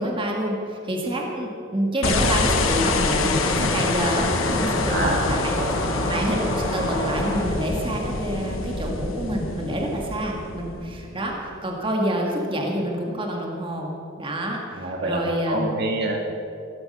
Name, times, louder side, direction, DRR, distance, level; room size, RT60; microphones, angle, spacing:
voice 1, 0.0-5.6 6.1-15.7, right 1 dB, 25° right, 0 dB, 1.9 m, -27 dB
sound 1, 2.0-11.4, left 3 dB, 85° left, 1.2 m, -26 dB
sound 2, 2.1-7.4, left 1 dB, 20° left, 2.6 m, -29 dB
voice 2, 4.9-5.2 5.6-5.7 14.7-16.2, right 1 dB, 55° right, 1 dB, 2.0 m, -26 dB
15.5 x 14.5 x 5.5 m, 2.7 s
head